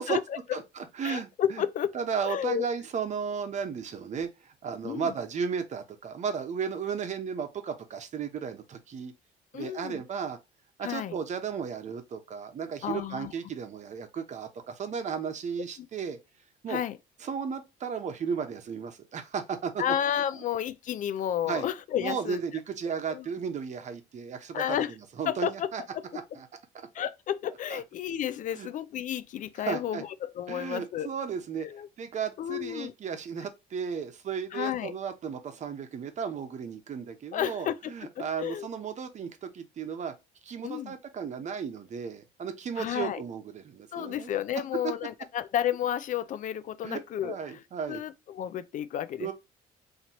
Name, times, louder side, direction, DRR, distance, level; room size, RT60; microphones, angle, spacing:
voice 1, 0.0-0.6 1.0-2.0 2.2-2.7 4.8-5.1 9.5-10.0 10.8-11.2 12.8-13.3 15.8-15.9 16.7-17.0 19.8-22.4 22.8-23.3 24.5-24.9 25.3-26.0 26.9-31.1 31.6-31.9 32.4-32.9 34.5-34.9 37.3-38.7 40.6-41.0 42.8-43.2 43.9-47.6 47.9-49.3, left 10 dB, 50° left, 0.4 m, -32 dB
voice 2, 0.5-1.6 1.9-9.1 9.5-10.4 10.8-16.2 16.6-16.8 17.2-19.8 21.5-21.7 22.0-25.8 26.3-26.5 27.7-27.8 28.5-28.7 29.7-30.0 30.5-31.7 32.0-40.1 40.4-44.3 46.8-48.0 49.2-49.3, right 6 dB, 45° right, 0.9 m, -34 dB
4.2 x 2.9 x 2.9 m
cardioid pair, 110°, 17 cm